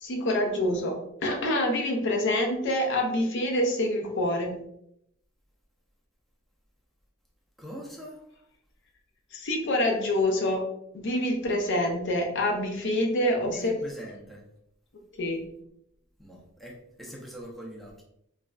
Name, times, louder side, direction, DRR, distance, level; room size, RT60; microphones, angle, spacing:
voice 1, 0.0-4.5 9.3-10.6 10.9-13.7 15.2-15.4, left 1 dB, 60° left, 1 dB, 0.6 m, -26 dB
voice 2, 7.6-8.3 13.4-14.4 16.2-18.0, equal, ahead, -4 dB, 0.5 m, -43 dB
3.1 x 2.4 x 2.3 m, 0.75 s
head